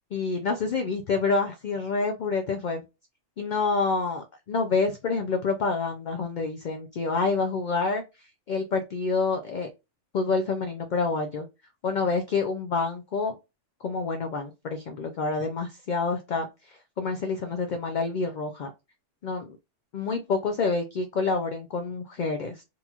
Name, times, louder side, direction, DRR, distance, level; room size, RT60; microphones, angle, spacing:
voice 1, 0.1-2.8 3.4-8.0 8.5-9.7 10.1-11.5 11.8-13.3 13.8-18.7 19.2-19.6 19.9-22.6, left 4 dB, 65° left, 5 dB, 0.4 m, -28 dB
3.9 x 2.9 x 2.3 m, 0.25 s
omnidirectional pair, 1.3 m